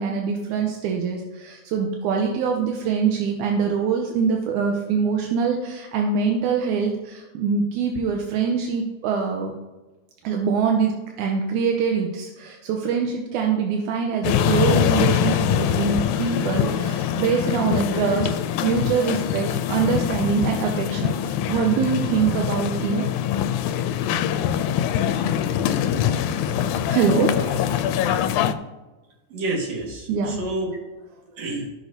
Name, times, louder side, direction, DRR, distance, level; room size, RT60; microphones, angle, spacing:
voice 1, 0.0-9.5 10.2-18.4 18.6-23.1 26.9-27.9 30.1-30.4, right 6 dB, 85° right, 2 dB, 2.2 m, -24 dB
sound 1, 14.2-28.6, left 9 dB, 85° left, 1.9 m, -23 dB
voice 2, 29.3-30.7 31.1-31.7, right 2 dB, 60° right, -1 dB, 2.9 m, -29 dB
15.0 x 6.1 x 2.7 m, 1.1 s
omnidirectional pair, 3.4 m